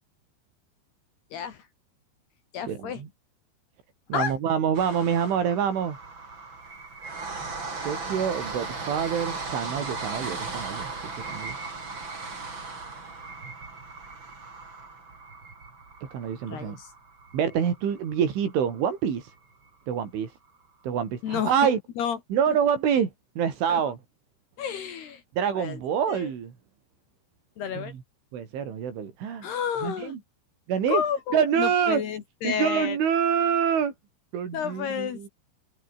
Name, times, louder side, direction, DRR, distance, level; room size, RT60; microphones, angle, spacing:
voice 1, 1.3-1.6 2.5-3.0 4.1-4.3 16.5-16.9 21.2-21.5 22.0-22.2 22.5-22.6 23.7-23.8 24.6-25.2 25.5-25.8 26.1-26.3 27.6-27.9 29.4-30.1 30.9-33.0 34.5-35.3, left 8 dB, 65° left, 4.1 m, -30 dB
voice 2, 2.7-3.1 4.1-6.0 7.8-11.6 16.1-16.8 17.3-19.3 19.9-20.3 20.8-21.8 22.3-24.0 25.4-26.5 27.8-27.9 28.3-29.5 29.8-30.2 30.7-31.0 31.3-32.0 32.4-33.9 34.3-35.3, right 8 dB, 90° right, 6.5 m, -26 dB
sound 1, 4.7-18.9 19.3-19.4 19.7-19.8, right 3 dB, 25° right, 4.8 m, -37 dB
omnidirectional pair, 5.4 m